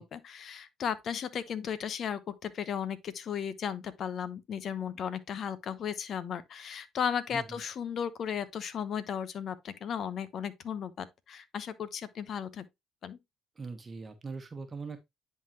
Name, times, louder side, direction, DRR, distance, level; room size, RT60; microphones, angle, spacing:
voice 1, 0.0-12.6 13.0-13.2, left 8 dB, 55° left, 0.9 m, -35 dB
voice 2, 13.6-15.0, right 4 dB, 30° right, 1.1 m, -41 dB
10.0 x 3.9 x 2.9 m
hypercardioid pair, 65°, 0 cm